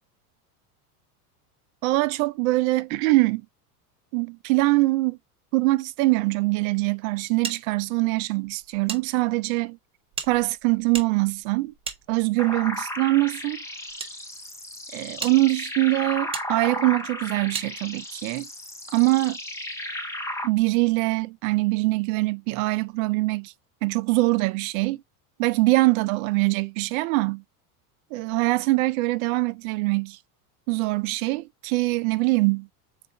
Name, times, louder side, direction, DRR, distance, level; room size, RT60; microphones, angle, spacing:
voice 1, 1.8-3.4 4.1-5.2 5.5-9.8 10.3-11.7 12.1-13.6 14.9-18.5 18.9-19.4 20.4-23.5 23.8-25.0 25.4-27.4 28.1-30.2 30.7-32.7, right 21 dB, 60° right, 0.5 m, -23 dB
sound 1, 7.4-9.0 9.3-9.4 10.1-12.6 13.4-14.1 14.7-14.8 15.2-15.4 16.3-16.5 17.5-17.7, right 6 dB, 10° right, 0.7 m, -36 dB
sound 2, 12.4-20.5, left 1 dB, 5° left, 0.4 m, -34 dB
4.1 x 2.5 x 3.8 m
supercardioid pair, 115°, 46 cm